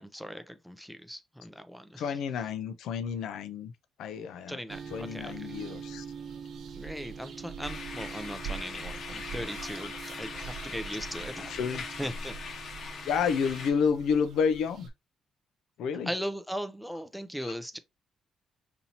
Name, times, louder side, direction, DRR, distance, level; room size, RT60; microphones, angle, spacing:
voice 1, 0.0-2.0 4.5-5.7 6.7-11.4 12.0-12.3 16.1-17.8, equal, ahead, 0.5 m, -38 dB
voice 2, 2.0-3.7 4.0-4.6 4.9-6.0 11.5-11.8 13.0-14.9 15.8-16.1, left 6 dB, 80° left, 0.5 m, -30 dB
sound 1, 4.7-14.9, right 6 dB, 70° right, 0.8 m, -43 dB
sound 2, 7.6-13.7, left 5 dB, 60° left, 0.9 m, -41 dB
4.2 x 2.7 x 2.8 m
cardioid pair, 90°, 0 cm